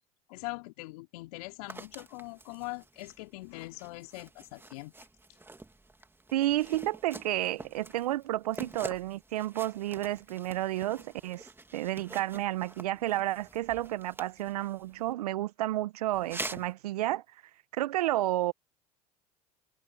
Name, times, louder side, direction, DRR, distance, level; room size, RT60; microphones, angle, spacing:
voice 1, 0.3-4.9, left 23 dB, 70° left, 3.2 m, -42 dB
sound 1, 1.7-15.1 16.1-16.7, right 2 dB, 10° right, 2.1 m, -46 dB
voice 2, 6.3-11.5 11.7-17.2 17.7-18.5, right 15 dB, 80° right, 1.0 m, -31 dB
hypercardioid pair, 70°, 20 cm